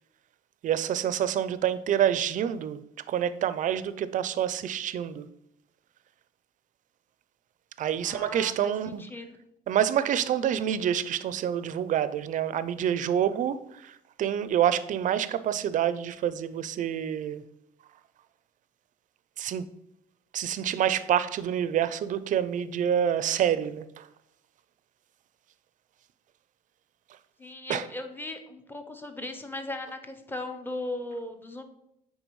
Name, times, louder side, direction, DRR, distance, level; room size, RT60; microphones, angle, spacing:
voice 1, 0.6-2.8 3.1-5.3 7.8-9.0 9.7-17.4 19.4-19.7 20.3-24.1 27.7-27.8, right 10 dB, 50° right, 0.4 m, -27 dB
voice 2, 8.0-9.4 27.4-31.6, left 2 dB, 10° left, 0.7 m, -38 dB
8.9 x 3.8 x 3.1 m
cardioid pair, 110°, 17 cm